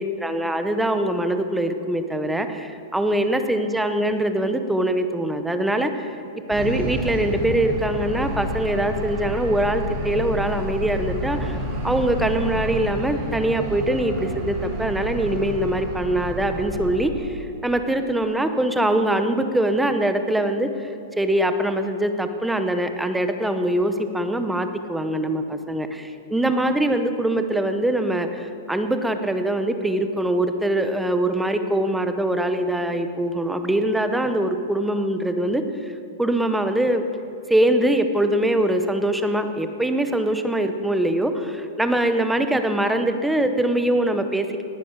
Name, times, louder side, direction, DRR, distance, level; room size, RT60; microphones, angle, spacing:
voice 1, 0.2-6.1 6.5-11.6 11.8-17.4 17.6-20.7 21.2-35.6 36.2-37.0 37.5-44.6, right 1 dB, 5° right, 8 dB, 0.7 m, -23 dB
sound 1, 6.5-17.0, equal, 20° right, 2.6 m, -29 dB
19.0 x 10.0 x 6.5 m, 2.9 s
supercardioid pair, 175°, 0 cm